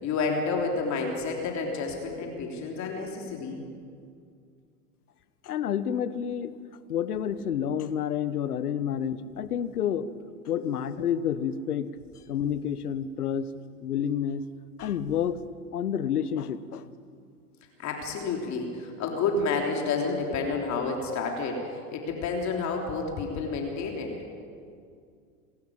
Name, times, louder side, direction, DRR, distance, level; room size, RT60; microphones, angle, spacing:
voice 1, 0.0-3.6 17.8-24.2, left 4 dB, 40° left, 1 dB, 3.5 m, -30 dB
voice 2, 5.4-6.5 6.9-10.1 10.5-11.9 12.3-13.5 13.8-14.4 14.8-15.4 15.7-16.8, left 9 dB, 80° left, 14 dB, 1.2 m, -29 dB
26.5 x 13.0 x 8.7 m, 2.3 s
hypercardioid pair, 100°, 44 cm